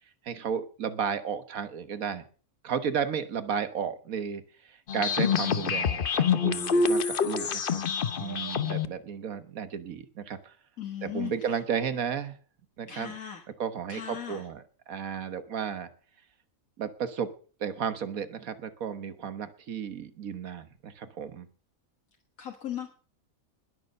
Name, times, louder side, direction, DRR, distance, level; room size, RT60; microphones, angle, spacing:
voice 1, 0.3-2.2 2.6-7.9 8.2-10.6 11.0-12.4 12.8-13.1 13.6-15.9 16.8-17.3 17.6-21.5, right 7 dB, 80° right, 11 dB, 1.6 m, -33 dB
sound 1, 4.9-8.9, left 6 dB, 45° left, 0.9 m, -26 dB
voice 2, 10.8-11.3 12.9-13.4 13.9-14.4 22.4-22.9, left 10 dB, 80° left, 2 dB, 1.9 m, -37 dB
20.0 x 6.8 x 6.5 m, 0.42 s
omnidirectional pair, 1.4 m